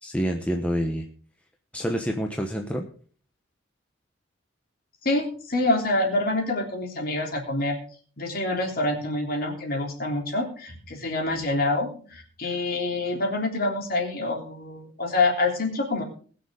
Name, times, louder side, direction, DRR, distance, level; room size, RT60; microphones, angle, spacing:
voice 1, 0.0-1.1 1.7-2.9, equal, 5° left, 2 dB, 1.0 m, -27 dB
voice 2, 5.0-7.8 8.2-16.0, left 2 dB, 45° left, 2 dB, 3.3 m, -26 dB
20.0 x 6.7 x 5.0 m, 0.42 s
head